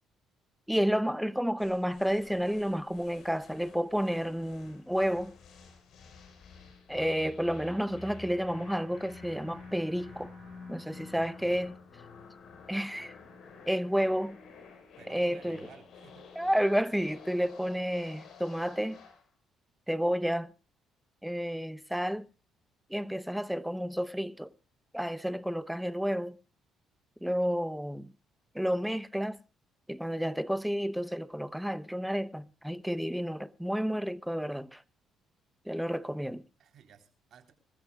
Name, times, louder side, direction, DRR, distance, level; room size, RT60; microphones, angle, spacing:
voice 1, 0.7-5.3 6.9-10.3 10.7-11.8 12.7-13.1 13.7-14.4 15.1-15.7 16.4-19.0 19.9-20.5 21.2-22.3 22.9-24.5 24.9-26.4 27.2-28.1 28.5-29.4 29.9-34.8 35.7-36.4, equal, ahead, 0.8 m, -31 dB
sound 1, 1.6-19.3, left 5 dB, 70° left, 4.6 m, -51 dB
Bowed string instrument, 7.9-13.2, right 6 dB, 45° right, 3.1 m, -60 dB
voice 2, 15.0-16.2 36.6-37.5, right 7 dB, 60° right, 3.6 m, -55 dB
26.0 x 14.5 x 2.3 m
cardioid pair, 90°, 0 cm